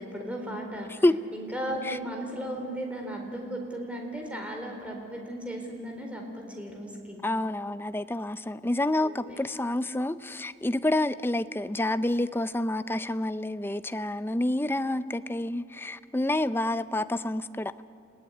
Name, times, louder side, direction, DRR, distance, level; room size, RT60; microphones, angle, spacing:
voice 1, 0.0-1.0 1.3-7.2 9.0-9.3, right 1 dB, 5° right, 4.0 m, -36 dB
voice 2, 7.2-17.7, left 1 dB, 10° left, 0.5 m, -28 dB
29.5 x 17.5 x 9.6 m
head